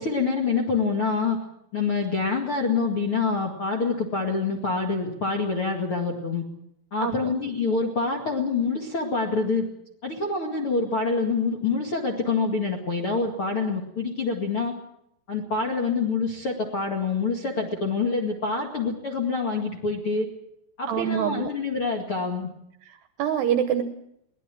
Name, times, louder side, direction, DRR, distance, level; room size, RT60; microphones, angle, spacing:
voice 1, 0.0-1.4 1.7-6.4 6.9-9.7 10.0-14.7 15.3-20.3 20.8-22.5, left 4 dB, 45° left, 1 dB, 1.8 m, -26 dB
voice 2, 7.0-7.3 20.9-21.5 22.9-23.8, right 9 dB, 75° right, 9 dB, 2.5 m, -26 dB
22.5 x 18.5 x 7.5 m, 0.78 s
omnidirectional pair, 5.7 m